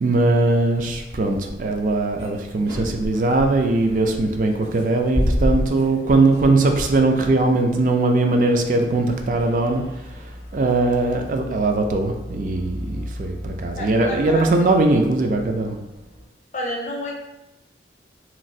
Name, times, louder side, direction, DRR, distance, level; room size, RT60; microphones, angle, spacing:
voice 1, 0.0-9.8 10.1-10.2 10.5-15.8, right 2 dB, 45° right, 4 dB, 0.3 m, -20 dB
sound 1, 0.7-16.2, equal, 70° right, 1.4 m, -33 dB
voice 2, 7.2-7.6 13.7-14.5 16.5-17.1, left 1 dB, 40° left, -1 dB, 0.5 m, -31 dB
3.0 x 2.4 x 2.6 m, 0.96 s
head